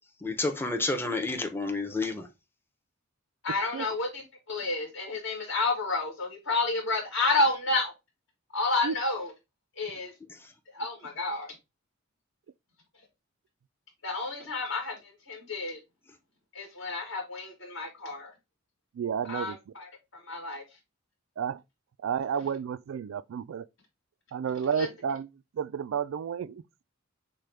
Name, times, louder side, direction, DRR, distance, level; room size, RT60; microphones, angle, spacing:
voice 1, 0.2-2.3 10.4-10.5, left 3 dB, 10° left, 0.7 m, -30 dB
voice 2, 3.4-7.9 8.5-9.3 9.8-10.1 10.7-11.5 14.0-15.8 16.5-18.3 19.3-20.6 24.7-24.9, left 3 dB, 65° left, 2.2 m, -30 dB
voice 3, 19.0-19.6 21.4-21.6 22.0-23.7 24.3-25.3 25.5-26.6, right 7 dB, 70° right, 0.3 m, -31 dB
6.4 x 2.2 x 3.4 m
head